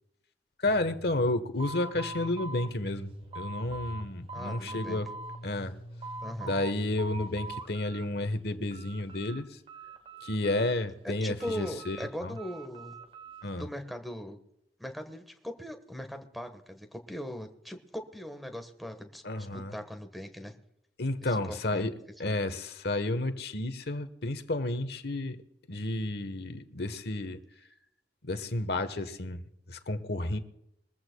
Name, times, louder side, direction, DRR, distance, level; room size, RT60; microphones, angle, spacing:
voice 1, 0.6-5.1 5.4-5.8 6.4-9.6 10.2-12.3 13.4-13.7 19.2-19.7 21.0-25.4 25.7-27.4 28.2-30.4, left 2 dB, 65° left, 10 dB, 1.2 m, -31 dB
sound 1, 0.7-7.5, equal, 35° left, 1.0 m, -47 dB
sound 2, 1.6-4.0 4.3-5.4 5.8-6.7 7.0-8.1 8.4-9.4 9.7-10.9 11.4-13.5, right 3 dB, 30° right, 1.0 m, -43 dB
voice 2, 4.3-5.0 6.2-6.5 11.0-13.0 13.6-14.4 14.8-20.5 21.5-21.9 22.2-22.4, equal, ahead, 5 dB, 1.3 m, -40 dB
22.5 x 14.5 x 2.3 m, 0.79 s
head